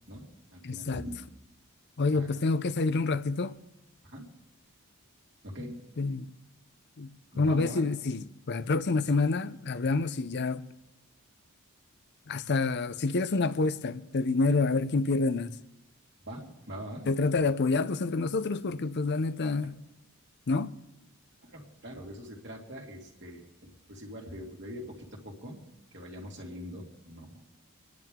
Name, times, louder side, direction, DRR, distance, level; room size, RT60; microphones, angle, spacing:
voice 1, 0.1-1.2 2.1-2.4 4.0-4.3 5.4-5.8 7.3-7.9 16.2-17.1 19.6-19.7 21.4-25.6 25.9-27.5, equal, 50° right, 2.4 m, -43 dB
voice 2, 0.6-1.0 2.0-3.5 6.0-6.3 7.0-7.1 7.4-10.7 12.3-15.5 17.1-19.7 20.5-20.7, left 3 dB, 50° left, 0.6 m, -28 dB
25.5 x 10.5 x 3.7 m
head